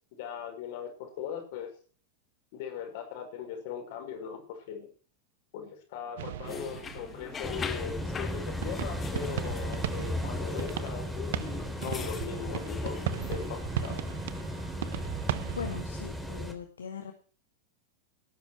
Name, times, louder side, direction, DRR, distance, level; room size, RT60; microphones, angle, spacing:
voice 1, 0.2-1.7 2.5-4.9 5.5-11.3 11.8-14.1, left 8 dB, 50° left, 6 dB, 5.5 m, -39 dB
sound 1, 6.2-15.8, right 13 dB, 55° right, 1.0 m, -38 dB
sound 2, 6.4-13.6, left 6 dB, 20° left, 2.0 m, -42 dB
sound 3, 7.4-16.5, equal, ahead, 3.5 m, -36 dB
voice 2, 15.6-17.1, left 6 dB, 70° left, 6 dB, 1.9 m, -39 dB
18.0 x 10.5 x 4.6 m, 0.40 s
figure-of-eight pair, 90°, 0 cm